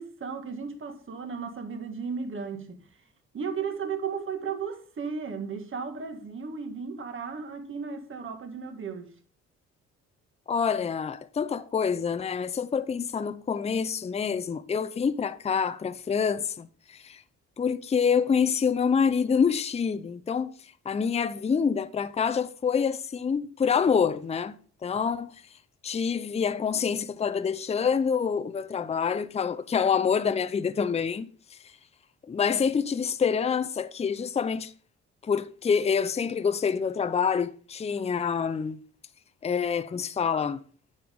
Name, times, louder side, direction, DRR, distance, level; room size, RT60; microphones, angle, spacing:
voice 1, 0.0-2.8 3.3-9.1, right 5 dB, 40° right, 1.7 m, -35 dB
voice 2, 10.5-17.2 17.6-20.5 20.9-24.5 24.8-25.3 25.8-31.6 32.3-34.7 35.2-38.8 39.4-40.6, left 6 dB, 20° left, 0.5 m, -26 dB
9.4 x 6.6 x 3.6 m
cardioid pair, 90°, 30 cm